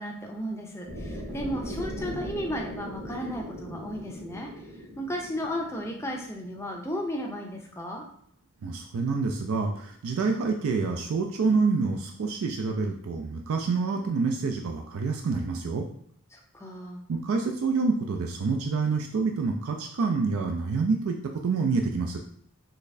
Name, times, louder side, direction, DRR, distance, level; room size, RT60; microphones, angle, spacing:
voice 1, 0.0-4.5 5.0-8.0 16.3-17.0, equal, 10° left, 1 dB, 0.5 m, -34 dB
sound 1, 0.9-7.0, equal, 45° right, 1.0 m, -39 dB
voice 2, 8.6-15.8 17.1-21.2 21.4-22.2, right 4 dB, 70° right, 3 dB, 0.4 m, -27 dB
4.0 x 3.2 x 2.6 m, 0.65 s
head